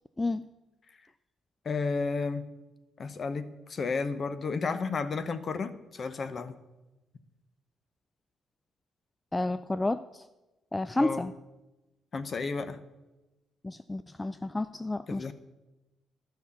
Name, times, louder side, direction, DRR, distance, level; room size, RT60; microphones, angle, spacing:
voice 1, 1.6-2.5 3.0-6.5 11.0-11.3 12.1-12.8 15.1-15.3, left 4 dB, 45° left, 11 dB, 0.8 m, -32 dB
voice 2, 9.3-10.2 10.7-11.3 13.6-15.3, left 2 dB, 15° left, 12 dB, 0.3 m, -31 dB
12.0 x 5.8 x 7.1 m, 1.0 s
cardioid pair, 90°, 0 cm